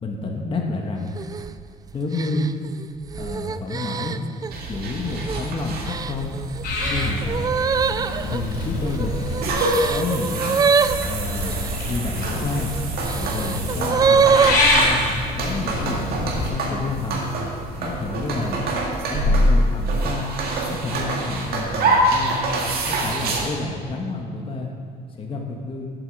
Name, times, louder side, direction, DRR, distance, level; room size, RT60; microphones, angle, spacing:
voice 1, 0.0-1.1 1.9-2.5 3.1-4.2 4.7-6.4 6.9-7.6 8.3-9.1 9.6-10.6 11.0-12.7 13.2-14.3 14.7-15.0 15.3-17.2 17.8-18.6 19.1-20.3 20.7-22.4 22.8-24.7 25.1-25.9, left 3 dB, 30° left, 0 dB, 1.3 m, -29 dB
sound 1, 1.2-1.5 2.1-4.5 5.1-5.5 5.9-11.8 12.5-14.6, right 6 dB, 20° right, 0.3 m, -24 dB
sound 2, 4.5-23.4, right 1 dB, 65° right, 2.0 m, -26 dB
Purr / Meow, 6.6-9.9 10.8-16.5, left 2 dB, 65° left, 3.3 m, -26 dB
8.2 x 7.5 x 7.8 m, 2.2 s
cardioid pair, 110°, 17 cm